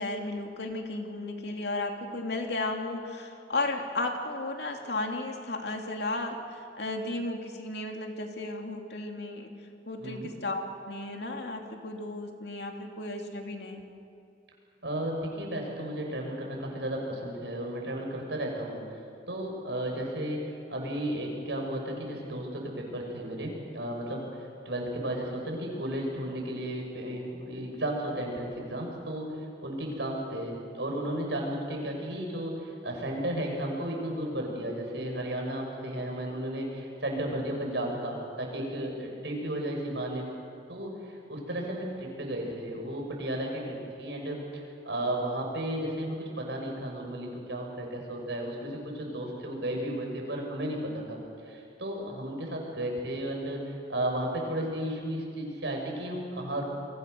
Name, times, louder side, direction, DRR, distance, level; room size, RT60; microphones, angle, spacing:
voice 1, 0.0-9.5 9.9-13.9, left 2 dB, 70° left, 3 dB, 2.8 m, -34 dB
voice 2, 14.8-18.8 19.3-29.3 29.6-40.3 40.7-51.2 51.5-53.6 53.9-56.6, right 1 dB, 80° right, 1 dB, 6.5 m, -34 dB
29.0 x 23.0 x 6.8 m, 2.4 s
head